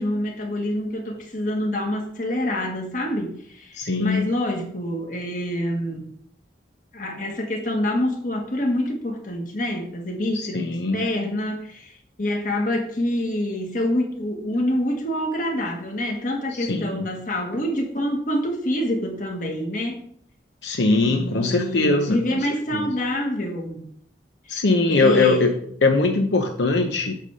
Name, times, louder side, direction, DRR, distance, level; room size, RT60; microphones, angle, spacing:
voice 1, 0.0-6.1 6.9-11.9 12.2-20.0 21.0-23.9 24.5-24.6 24.9-25.5, left 1 dB, 45° left, 1 dB, 1.7 m, -26 dB
voice 2, 3.8-4.3 10.3-11.1 16.5-17.1 20.6-22.4 22.7-22.9 24.5-27.1, left 3 dB, 80° left, 3 dB, 0.8 m, -21 dB
8.9 x 3.4 x 6.6 m, 0.63 s
head